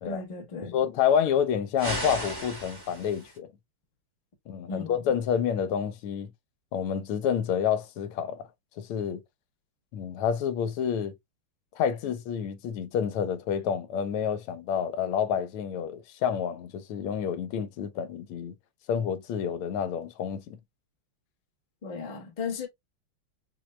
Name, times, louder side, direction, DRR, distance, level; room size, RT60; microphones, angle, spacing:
voice 1, 0.0-0.7 4.7-4.9 21.8-22.7, left 4 dB, 45° left, 0.6 m, -35 dB
voice 2, 0.6-3.5 4.5-6.3 6.7-8.4 8.8-9.2 9.9-11.1 11.7-18.5 18.9-20.6, left 8 dB, 80° left, 1.5 m, -28 dB
sound 1, 1.8-3.4, equal, 15° right, 0.8 m, -35 dB
4.4 x 2.2 x 3.0 m
omnidirectional pair, 2.4 m